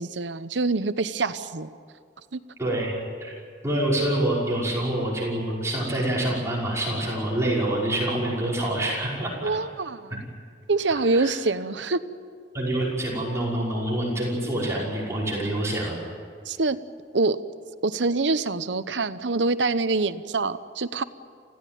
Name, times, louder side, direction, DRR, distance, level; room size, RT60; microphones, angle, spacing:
voice 1, 0.0-1.7 2.3-2.4 9.4-10.2 10.7-12.0 16.5-16.8 17.1-17.4 17.8-21.0, right 3 dB, 85° right, 13 dB, 0.9 m, -25 dB
voice 2, 2.6-2.9 3.2-3.3 3.6-9.3 11.1-11.3 12.5-16.0, right 1 dB, 15° right, -5 dB, 5.7 m, -26 dB
28.5 x 16.0 x 9.3 m, 2.1 s
head